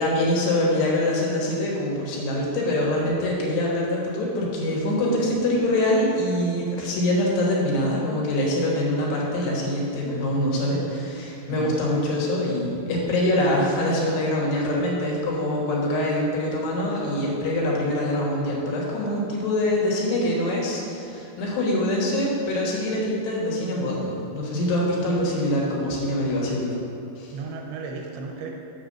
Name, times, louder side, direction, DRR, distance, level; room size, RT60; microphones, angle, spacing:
voice 1, 0.0-26.7 27.2-27.3, left 1 dB, 90° left, -3 dB, 3.6 m, -24 dB
voice 2, 11.5-11.8 26.2-26.4 27.3-28.5, right 4 dB, 80° right, 0 dB, 2.6 m, -34 dB
6.7 x 5.5 x 6.5 m, 2.7 s
omnidirectional pair, 4.7 m